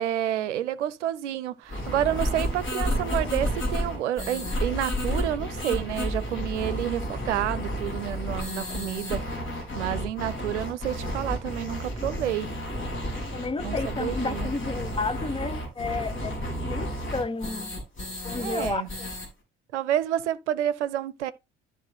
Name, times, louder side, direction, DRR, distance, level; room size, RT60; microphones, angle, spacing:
voice 1, 0.0-9.4 9.8-12.5 13.6-14.5 18.4-18.9 19.7-21.3, right 11 dB, 70° right, 0.7 m, -29 dB
sound 1, 1.7-19.3, equal, 35° left, 4.3 m, -31 dB
voice 2, 13.3-16.3 16.6-17.8 18.2-19.1, left 4 dB, 15° left, 0.9 m, -32 dB
12.5 x 4.8 x 2.7 m
figure-of-eight pair, 55°, 36 cm